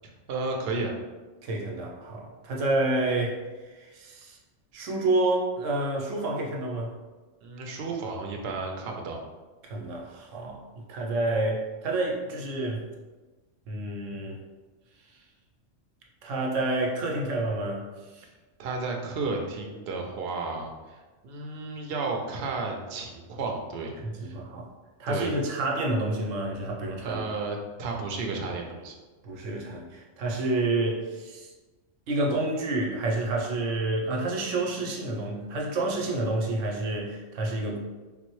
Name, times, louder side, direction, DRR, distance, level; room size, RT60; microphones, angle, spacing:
voice 1, 0.3-0.9 7.4-9.2 18.6-24.0 24.2-24.4 25.1-25.4 27.0-28.9, right 3 dB, 65° right, 1 dB, 0.7 m, -33 dB
voice 2, 1.4-3.4 3.7-4.4 4.7-6.9 9.6-12.8 13.7-14.4 16.2-17.8 18.1-18.2 24.0-24.7 25.0-27.2 29.2-31.5 32.1-37.8, right 2 dB, 85° right, 0 dB, 1.0 m, -29 dB
3.6 x 2.0 x 3.0 m, 1.2 s
omnidirectional pair, 1.3 m